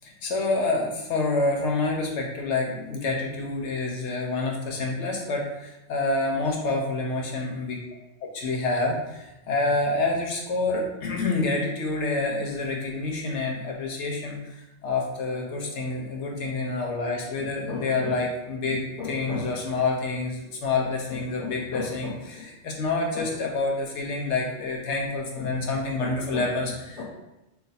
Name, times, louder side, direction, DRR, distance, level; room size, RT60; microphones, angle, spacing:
voice 1, 0.0-7.8 8.2-27.0, left 3 dB, 85° left, 0 dB, 0.9 m, -28 dB
3.2 x 2.3 x 4.1 m, 0.93 s
omnidirectional pair, 1.2 m